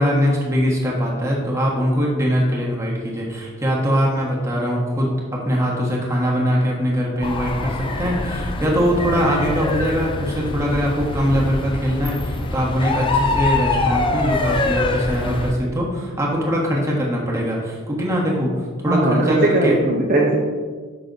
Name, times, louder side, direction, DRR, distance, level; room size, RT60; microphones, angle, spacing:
voice 1, 0.0-19.8, equal, 15° right, -3 dB, 1.2 m, -22 dB
sound 1, 7.2-15.5, left 3 dB, 25° left, 0.4 m, -24 dB
voice 2, 18.9-20.4, right 2 dB, 40° right, -2 dB, 0.8 m, -18 dB
5.9 x 5.8 x 3.9 m, 1.5 s
head